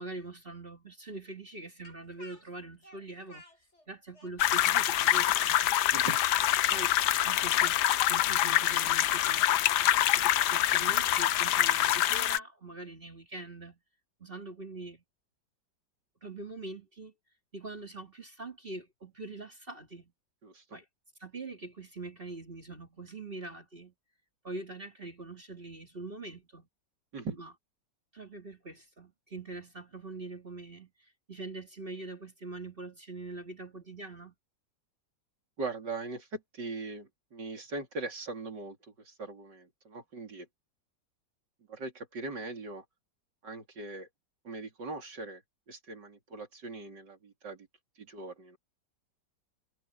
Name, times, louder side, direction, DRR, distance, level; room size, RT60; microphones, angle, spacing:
voice 1, 0.0-3.4 3.9-5.6 6.7-7.0 7.2-7.8 8.1-9.7 10.1-13.8 14.2-15.0 16.2-17.1 17.5-20.1 20.7-20.8 21.2-23.9 24.4-26.7 27.4-27.5 28.1-34.3, right 2 dB, 30° right, 2.5 m, -43 dB
Speech, 1.8-3.9 4.1-10.2, left 1 dB, 35° left, 8.0 m, -55 dB
sound 1, 4.4-12.4, left 12 dB, 70° left, 1.2 m, -25 dB
voice 2, 20.4-20.8 27.1-27.4 35.6-40.5 41.7-42.8 43.4-44.1 44.4-45.4 45.7-47.7 48.0-48.6, right 3 dB, 70° right, 3.8 m, -40 dB
omnidirectional pair, 2.0 m